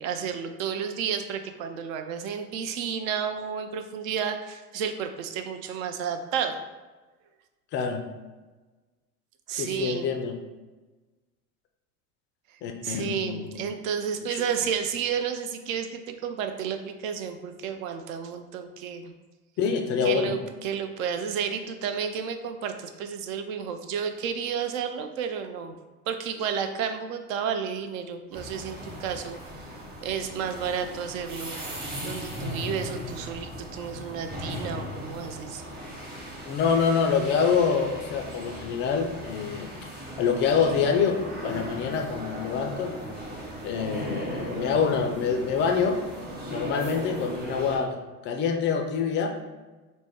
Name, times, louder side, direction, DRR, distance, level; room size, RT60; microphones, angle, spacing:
voice 1, 0.0-6.6 9.5-10.1 12.8-19.1 20.0-25.7 26.1-29.4 30.0-31.5 32.0-35.6, right 7 dB, 60° right, 7 dB, 0.6 m, -31 dB
voice 2, 7.7-8.0 9.5-10.4 12.6-13.8 14.3-14.4 19.6-20.4 36.4-39.7 40.2-42.9 43.6-46.0 46.5-48.0 48.2-49.3, left 6 dB, 25° left, 4 dB, 0.3 m, -26 dB
sound 1, 28.3-47.8, equal, 20° right, 1.0 m, -37 dB
4.1 x 2.1 x 3.4 m, 1.2 s
hypercardioid pair, 80°, 46 cm